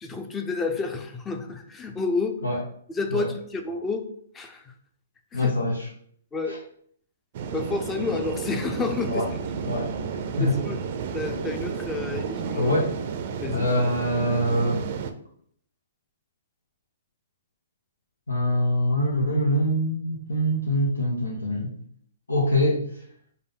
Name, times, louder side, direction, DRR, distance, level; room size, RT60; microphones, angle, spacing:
voice 1, 0.0-2.4 2.9-4.1 4.3-4.7 5.3-5.5 6.3-6.6 7.5-9.4 10.4-10.8 11.1-12.8 13.4-13.7, left 4 dB, 15° left, 5 dB, 0.6 m, -30 dB
voice 2, 5.3-5.9 6.5-6.6 9.1-9.2 9.6-9.9 10.4-10.6 12.6-12.9 13.5-14.8 18.3-21.7 22.3-22.8, equal, 85° left, -3 dB, 0.8 m, -24 dB
sound 1, 7.3-15.1, right 6 dB, 50° right, 0.4 m, -32 dB
5.1 x 2.2 x 3.7 m, 0.63 s
hypercardioid pair, 125°, 0 cm